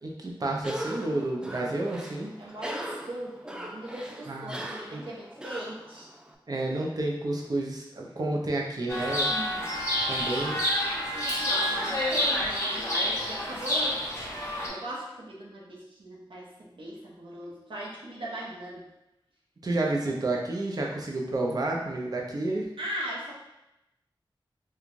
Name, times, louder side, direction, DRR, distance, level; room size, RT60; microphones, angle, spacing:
voice 1, 0.0-2.3 4.3-4.6 4.9-5.0 6.5-9.3 10.1-10.6 19.6-22.6, right 2 dB, 45° right, -1 dB, 0.6 m, -30 dB
Cough, 0.6-6.3, equal, 10° right, 0.4 m, -40 dB
voice 2, 2.4-6.1 9.3-10.3 11.5-14.0 14.7-18.9 20.0-20.1 22.8-23.3, right 1 dB, 75° right, -4 dB, 0.9 m, -39 dB
Chirp tweet, 8.9-14.7, left 1 dB, 30° left, 0.9 m, -28 dB
4.6 x 2.4 x 2.5 m, 0.91 s
wide cardioid pair, 80°, 9 cm